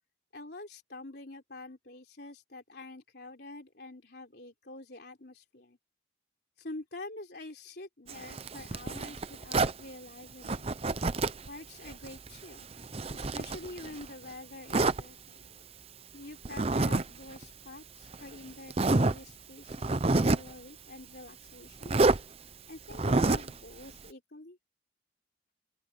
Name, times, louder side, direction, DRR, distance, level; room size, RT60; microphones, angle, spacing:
voice 1, 0.3-5.8 6.6-10.7 11.5-12.7 13.1-15.5 16.1-21.9 22.7-24.6, left 2 dB, 55° left, 3.8 m, -46 dB
Zipper (clothing), 8.1-9.8 10.4-11.5 11.9-14.1 14.7-15.0 16.4-17.0 17.3-17.4 18.1-18.2 18.7-19.2 19.7-20.5 21.8-22.2 22.9-23.5, right 2 dB, 30° right, 0.7 m, -28 dB
open air
head